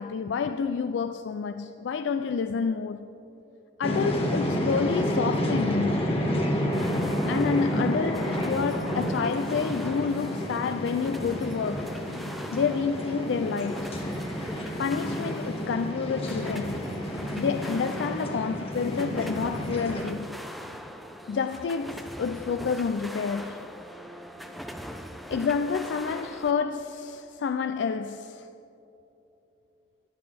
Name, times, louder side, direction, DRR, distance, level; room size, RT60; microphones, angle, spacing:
voice 1, 0.0-3.1 3.8-6.0 7.3-12.0 12.5-14.0 14.8-16.9 17.4-20.4 21.3-23.7 25.3-28.5, left 5 dB, 75° left, 0.3 m, -29 dB
sound 1, 3.8-20.0, equal, 35° left, 1.5 m, -30 dB
sound 2, 6.7-26.5, equal, ahead, 0.5 m, -41 dB
21.5 x 8.0 x 3.4 m
head